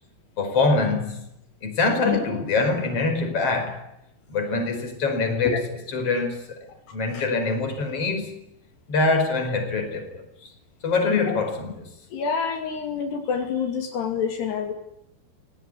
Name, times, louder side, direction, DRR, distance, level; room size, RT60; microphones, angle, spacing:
voice 1, 0.4-1.2 1.6-3.9 4.3-6.7 6.9-8.4 8.9-10.5 10.8-11.9, left 3 dB, 35° left, 5.9 m, -24 dB
voice 2, 12.1-14.7, left 6 dB, 75° left, 4.8 m, -27 dB
28.5 x 18.0 x 9.8 m
omnidirectional pair, 4.8 m